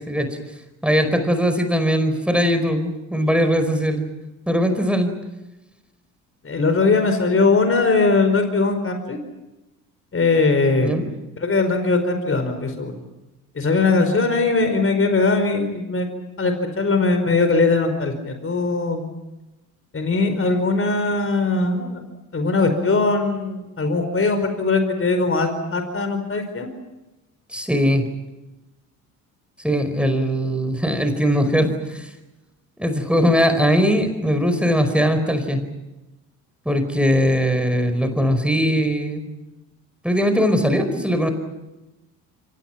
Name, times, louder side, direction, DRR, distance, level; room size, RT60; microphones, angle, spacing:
voice 1, 0.8-4.0 4.5-5.1 10.8-11.0 27.5-28.0 29.6-32.0 32.8-35.6 36.6-39.3 40.0-41.3, equal, ahead, 8 dB, 4.8 m, -20 dB
voice 2, 6.4-9.2 10.1-11.1 11.4-12.9 13.5-16.1 16.4-19.1 19.9-22.1 22.3-26.7, left 3 dB, 30° left, 7 dB, 4.9 m, -20 dB
29.5 x 26.0 x 5.9 m, 1.0 s
hypercardioid pair, 60°, 43 cm